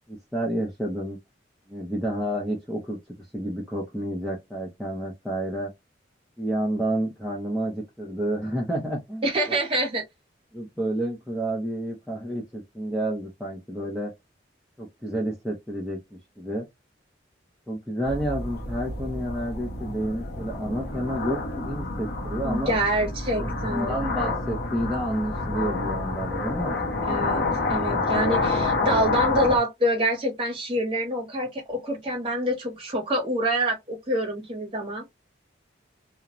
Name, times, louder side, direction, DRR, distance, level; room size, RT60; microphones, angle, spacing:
voice 1, 0.1-1.2 1.7-3.0 3.3-5.7 6.4-9.6 10.5-14.1 14.8-16.7 17.7-22.7 23.4-26.8, right 1 dB, ahead, 0.6 m, -30 dB
voice 2, 9.2-10.0 22.4-24.0 27.0-35.1, right 1 dB, 25° right, 1.1 m, -26 dB
sound 1, 18.0-29.6, left 3 dB, 55° left, 0.9 m, -28 dB
2.5 x 2.2 x 2.9 m
head